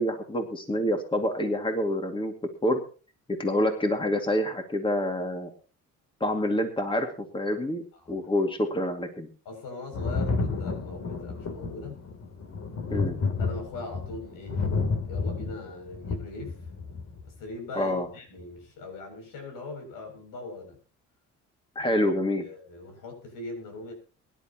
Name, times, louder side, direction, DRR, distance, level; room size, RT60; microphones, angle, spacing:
voice 1, 0.0-2.3 2.6-2.8 3.4-5.5 6.2-9.3 12.9-13.2 17.7-18.1 21.8-22.5, left 1 dB, 15° left, 5 dB, 2.3 m, -27 dB
voice 2, 9.5-12.1 13.4-14.6 15.0-16.6 17.3-20.8 21.8-22.0 22.4-23.9, left 2 dB, 85° left, 5 dB, 7.3 m, -41 dB
Thunder, 9.9-17.3 18.4-18.5, left 4 dB, 55° left, 3.2 m, -31 dB
23.0 x 11.0 x 3.0 m, 0.37 s
cardioid pair, 120°, 32 cm